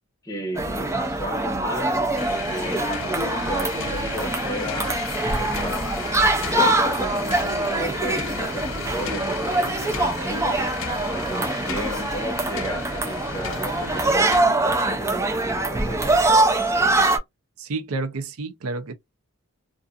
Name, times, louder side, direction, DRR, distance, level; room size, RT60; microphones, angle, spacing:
voice 1, 0.2-5.0 5.3-10.8 11.1-16.2, equal, 15° left, 0.8 m, -34 dB
sound 1, 0.6-17.2, right 2 dB, 15° right, 0.3 m, -23 dB
sound 2, 2.2-14.4, left 6 dB, 60° left, 0.5 m, -35 dB
voice 2, 17.6-18.9, right 3 dB, 75° right, 0.5 m, -30 dB
2.5 x 2.4 x 2.4 m
head